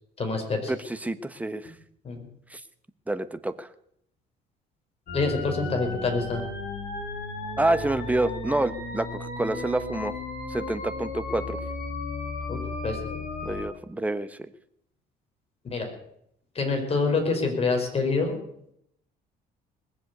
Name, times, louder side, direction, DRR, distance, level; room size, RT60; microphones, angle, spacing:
voice 1, 0.2-0.7 2.0-2.2 5.1-6.4 12.5-13.0 15.7-15.9 16.5-18.4, left 4 dB, 35° left, 4 dB, 4.9 m, -26 dB
voice 2, 0.7-1.7 2.5-2.6 3.1-3.7 7.6-10.1 10.5-11.6 13.4-14.5, right 2 dB, 10° right, 11 dB, 1.0 m, -28 dB
sound 1, 5.1-13.6, left 2 dB, 55° left, 7.9 m, -34 dB
20.5 x 7.8 x 8.1 m, 0.73 s
cardioid pair, 110°, 17 cm